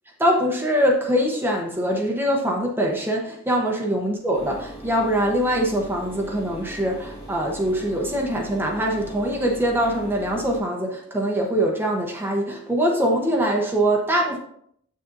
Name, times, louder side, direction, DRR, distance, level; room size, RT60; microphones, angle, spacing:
voice 1, 0.2-14.4, equal, 10° right, 0 dB, 0.9 m, -23 dB
sound 1, 4.3-10.6, equal, 30° left, 2.1 m, -40 dB
8.2 x 6.4 x 2.6 m, 0.67 s
head